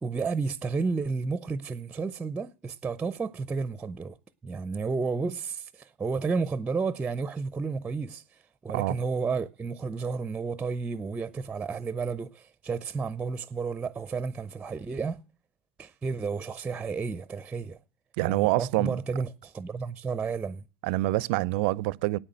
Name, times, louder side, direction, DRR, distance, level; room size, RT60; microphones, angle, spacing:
voice 1, 0.0-4.2 4.4-15.2 15.8-17.8 18.2-20.6, right 4 dB, 15° right, 0.6 m, -32 dB
voice 2, 18.2-19.0 20.8-22.2, right 19 dB, 60° right, 0.5 m, -26 dB
9.1 x 8.8 x 7.6 m
hypercardioid pair, 85°, 6 cm